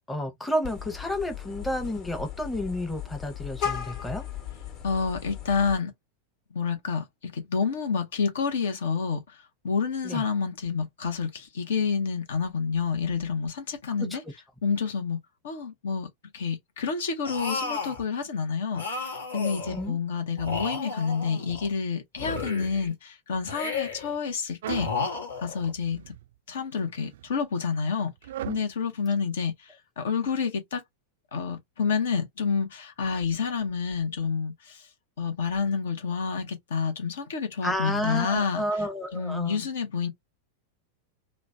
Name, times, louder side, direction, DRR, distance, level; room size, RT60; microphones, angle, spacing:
voice 1, 0.0-4.2 10.0-10.2 14.0-14.2 19.7-20.0 37.6-39.6, left 1 dB, 5° left, 0.8 m, -31 dB
Vehicle horn car horn honking, 0.6-5.8, left 9 dB, 45° left, 1.1 m, -37 dB
voice 2, 4.8-5.9 6.5-14.2 14.6-15.2 15.4-16.1 16.3-24.9 25.4-26.0 26.5-28.1 28.4-30.8 31.3-34.9 35.2-38.6 39.1-40.1, left 5 dB, 60° left, 0.7 m, -29 dB
sound 1, 17.2-18.0 18.7-19.9 20.4-21.7 22.2-22.9 23.4-24.1 24.7-25.7, left 4 dB, 80° left, 1.0 m, -33 dB
sound 2, 24.6-25.0 25.6-26.3 26.9-27.3 28.2-28.7, right 12 dB, 60° right, 0.3 m, -37 dB
3.1 x 2.1 x 2.5 m
figure-of-eight pair, 90°, 0 cm